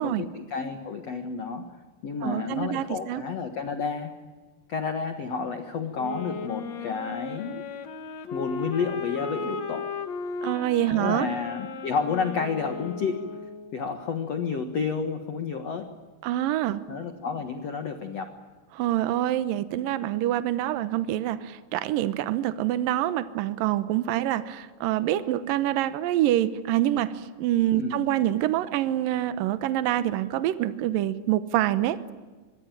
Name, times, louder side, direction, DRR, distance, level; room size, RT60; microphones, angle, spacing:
voice 1, 0.0-1.7 2.0-4.1 4.7-7.6 8.3-9.9 10.9-13.2 13.7-15.9 16.9-18.4 27.7-28.0, left 5 dB, 75° left, 7 dB, 1.4 m, -30 dB
voice 2, 2.2-3.2 10.4-11.3 16.2-16.8 18.7-32.1, right 13 dB, 85° right, 13 dB, 2.0 m, -26 dB
sound 1, 5.9-13.8, left 5 dB, 55° left, 1.9 m, -36 dB
26.0 x 22.5 x 9.1 m, 1.3 s
omnidirectional pair, 5.5 m